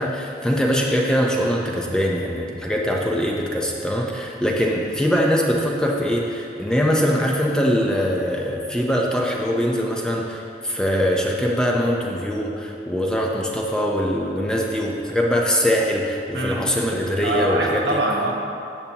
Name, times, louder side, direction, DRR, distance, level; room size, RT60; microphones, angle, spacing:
voice 1, 0.0-17.8, equal, 5° left, -2 dB, 0.6 m, -22 dB
voice 2, 17.2-18.3, right 1 dB, 75° right, -2 dB, 1.3 m, -23 dB
10.5 x 7.1 x 2.9 m, 2.6 s
head